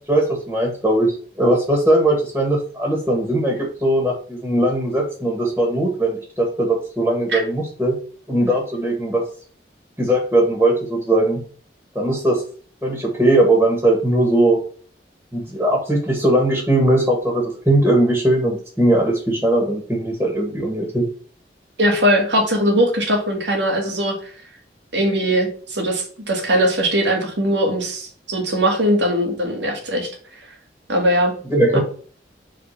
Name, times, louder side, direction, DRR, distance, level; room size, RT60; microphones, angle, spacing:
voice 1, 0.1-8.0 8.3-9.2 10.0-11.4 11.9-12.4 12.8-14.6 15.3-21.0 31.5-31.8, right 1 dB, 10° right, 0 dB, 1.8 m, -19 dB
voice 2, 21.8-24.2 24.9-30.1 30.9-31.3 31.7-31.8, equal, 85° right, 1 dB, 2.1 m, -20 dB
5.0 x 3.8 x 5.8 m, 0.44 s
head